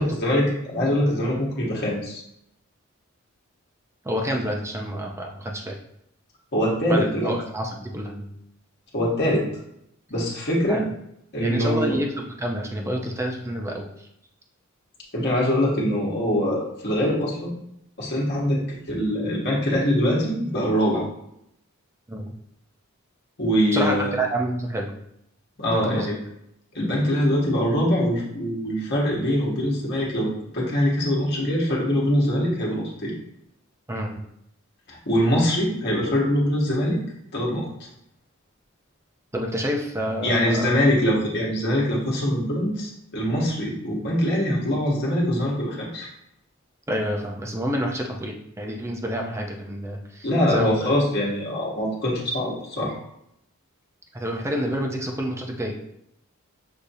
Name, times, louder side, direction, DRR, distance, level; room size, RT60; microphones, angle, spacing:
voice 1, 0.0-2.2 6.5-7.3 8.9-9.5 10.1-10.9 11.3-12.0 15.1-17.5 18.0-21.1 23.4-24.1 25.6-26.2 26.7-33.1 34.9-37.0 37.3-37.7 40.2-46.1 50.2-53.0, equal, 50° left, -4 dB, 1.3 m, -23 dB
voice 2, 4.0-5.8 6.9-8.4 10.7-10.9 11.4-14.1 22.1-22.3 23.7-25.0 25.7-26.1 33.9-34.2 39.3-40.7 46.9-50.9 54.1-55.8, equal, 15° right, 0 dB, 0.5 m, -28 dB
6.3 x 2.7 x 2.7 m, 0.77 s
head